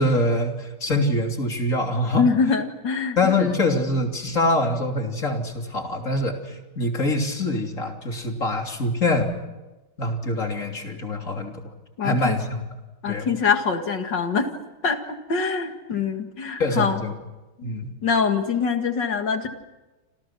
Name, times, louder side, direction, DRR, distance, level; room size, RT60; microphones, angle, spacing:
voice 1, 0.0-2.3 3.2-9.3 10.0-11.6 12.0-12.6 13.1-13.3 16.6-17.1 17.6-17.9, left 1 dB, 35° left, 3 dB, 3.6 m, -24 dB
voice 2, 2.2-3.6 12.0-12.4 13.0-14.5 14.8-15.0 15.3-17.0 17.6-17.7 18.0-19.5, left 5 dB, 60° left, 6 dB, 2.5 m, -24 dB
29.0 x 27.5 x 6.1 m, 1.1 s
omnidirectional pair, 2.3 m